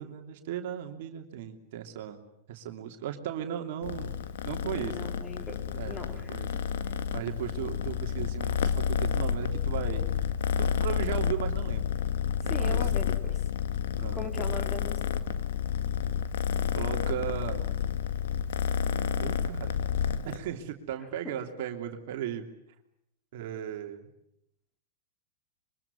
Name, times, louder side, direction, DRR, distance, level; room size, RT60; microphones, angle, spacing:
voice 1, 0.0-2.2 2.5-4.1 4.4-5.1 5.7-6.5 7.1-10.1 10.6-11.9 12.4-12.8 14.0-14.4 16.7-17.7 19.2-19.7 20.2-22.5 23.3-24.1, right 10 dB, 55° right, 5 dB, 2.9 m, -36 dB
Purr, 3.8-20.4, left 8 dB, 65° left, 1.9 m, -30 dB
voice 2, 4.7-6.6 12.4-13.4 14.1-15.2 21.2-21.4, left 1 dB, 15° left, 5 dB, 4.7 m, -40 dB
25.5 x 23.5 x 9.7 m, 0.78 s
hypercardioid pair, 105°, 0 cm